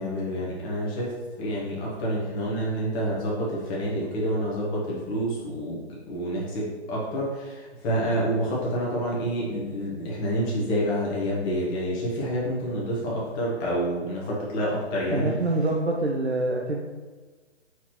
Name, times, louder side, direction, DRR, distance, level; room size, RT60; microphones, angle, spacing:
voice 1, 0.0-15.4, equal, 15° left, -5 dB, 1.1 m, -28 dB
voice 2, 15.1-16.8, right 2 dB, 75° right, -1 dB, 0.8 m, -25 dB
6.9 x 4.6 x 3.0 m, 1.4 s
figure-of-eight pair, 135°, 33 cm